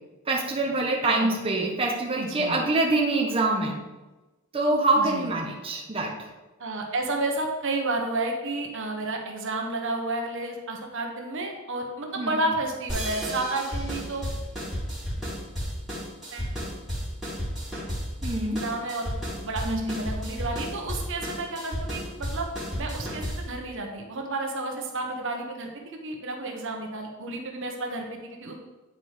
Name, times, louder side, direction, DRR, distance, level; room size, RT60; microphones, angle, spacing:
voice 1, 0.3-3.7 4.5-6.3 12.2-12.4 18.2-18.6 19.6-20.0, right 2 dB, 25° right, -1 dB, 1.0 m, -25 dB
voice 2, 1.0-1.4 2.2-2.6 4.9-5.6 6.6-14.2 16.3-16.5 18.4-19.1 19.4-22.5 22.8-28.1 28.4-28.6, right 2 dB, 65° right, 2 dB, 1.2 m, -31 dB
sound 1, 12.9-23.6, equal, ahead, 2.9 m, -33 dB
9.6 x 4.4 x 5.0 m, 1.1 s
head